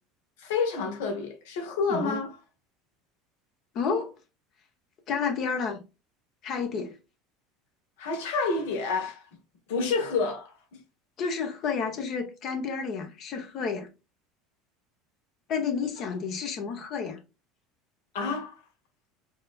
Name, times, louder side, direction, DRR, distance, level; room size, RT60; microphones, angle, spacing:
voice 1, 0.4-2.4 8.0-9.2 9.7-10.5 18.1-18.6, left 4 dB, 80° left, 1.3 m, -29 dB
voice 2, 1.9-2.2 3.7-4.1 5.1-5.8 6.4-7.0 11.2-13.9 15.5-17.2, left 5 dB, 55° left, 0.9 m, -30 dB
4.6 x 2.7 x 2.3 m
hypercardioid pair, 90°, 0 cm